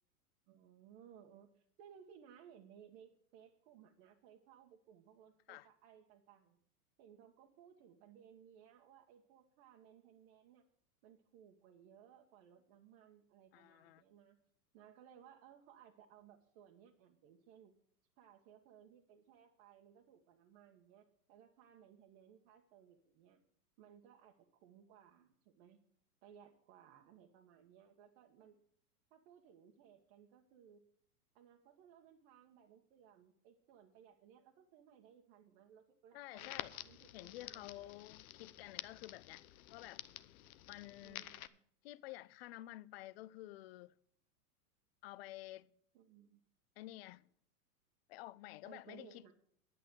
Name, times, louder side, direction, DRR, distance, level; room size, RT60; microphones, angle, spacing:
voice 1, 0.5-6.6 7.0-10.6 11.0-14.4 14.7-17.7 18.2-23.4 23.8-25.8 26.2-28.6 29.1-30.8 31.3-37.9 41.0-41.6 45.9-46.4 48.6-49.3, right 8 dB, 45° right, 1.5 m, -62 dB
voice 2, 13.5-14.0 36.1-36.8 37.1-39.4 39.7-40.0 40.7-41.3 41.8-44.0 45.0-45.7 46.8-47.3 48.1-49.3, left 17 dB, 45° left, 0.5 m, -51 dB
Crackle, 36.4-41.5, left 13 dB, 70° left, 0.8 m, -50 dB
11.0 x 8.9 x 6.3 m
hypercardioid pair, 135°, 45 cm